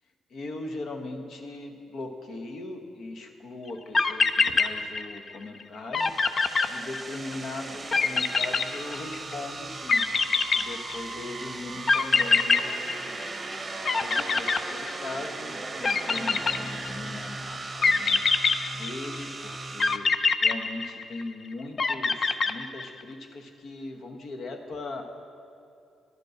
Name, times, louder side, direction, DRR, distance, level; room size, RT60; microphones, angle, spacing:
voice 1, 0.3-10.1 10.5-13.2 13.8-15.5 16.0-18.3 18.7-20.1 20.4-25.0, left 2 dB, 65° left, 3 dB, 1.1 m, -39 dB
sound 1, 3.7-3.8 3.9-5.3 5.6-5.7 5.9-7.3 7.9-9.3 9.9-11.2 11.9-13.5 13.8-15.3 15.8-17.1 17.8-19.2 19.8-21.3 21.8-23.0, left 4 dB, 45° left, 0.5 m, -24 dB
sound 2, 6.0-20.0, right 3 dB, 25° right, 0.8 m, -37 dB
11.0 x 5.2 x 7.8 m, 2.5 s
cardioid pair, 75°, 0 cm